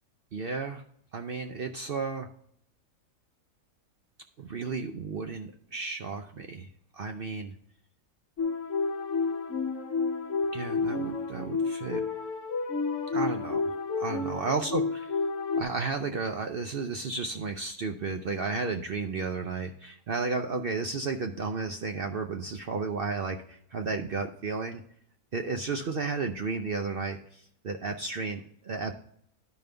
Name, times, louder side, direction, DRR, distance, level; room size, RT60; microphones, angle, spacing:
voice 1, 0.3-0.8 1.1-2.3 4.4-6.7 6.9-7.5 10.5-12.0 13.1-13.6 14.0-15.1 15.5-24.8 25.3-28.9, right 4 dB, 60° right, 4 dB, 0.6 m, -33 dB
sound 1, 8.4-15.6, left 4 dB, 60° left, 1.1 m, -30 dB
12.0 x 5.2 x 3.3 m, 0.66 s
omnidirectional pair, 1.6 m